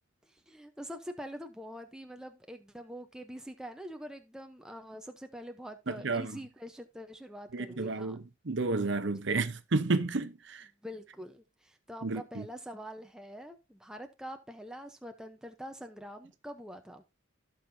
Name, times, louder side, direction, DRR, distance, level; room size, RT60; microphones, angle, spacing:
voice 1, 0.3-8.2 10.8-17.0, equal, 5° right, 0.8 m, -45 dB
voice 2, 5.9-6.3 7.5-10.7 12.0-12.4, right 3 dB, 60° right, 0.8 m, -31 dB
16.5 x 5.6 x 2.7 m
head